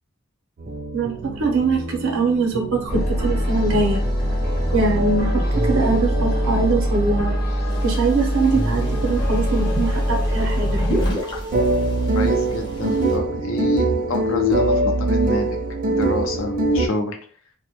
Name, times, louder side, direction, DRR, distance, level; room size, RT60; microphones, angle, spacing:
sound 1, 0.6-16.9, right 1 dB, 40° right, 0.4 m, -25 dB
voice 1, 0.9-4.0 4.7-7.4 7.8-10.8, right 3 dB, 90° right, 1 dB, 0.6 m, -22 dB
sound 2, 2.9-11.1, equal, 50° left, 0.8 m, -23 dB
sound 3, 7.7-13.2, equal, 20° left, 0.6 m, -33 dB
voice 2, 12.1-15.6 15.9-17.2, left 2 dB, 75° left, 4 dB, 0.5 m, -29 dB
2.1 x 2.1 x 2.8 m, 0.42 s
head